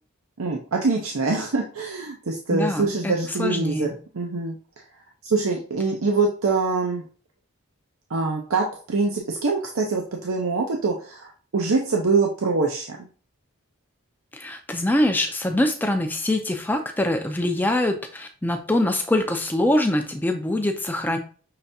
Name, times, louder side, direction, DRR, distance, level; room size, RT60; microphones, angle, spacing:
voice 1, 0.4-3.9 4.1-4.8 5.2-7.0 8.1-13.0, right 3 dB, 75° right, 1 dB, 0.7 m, -24 dB
voice 2, 2.5-3.1 3.4-3.9 14.3-21.2, left 1 dB, 10° left, 5 dB, 0.4 m, -24 dB
5.8 x 3.3 x 2.7 m, 0.40 s
head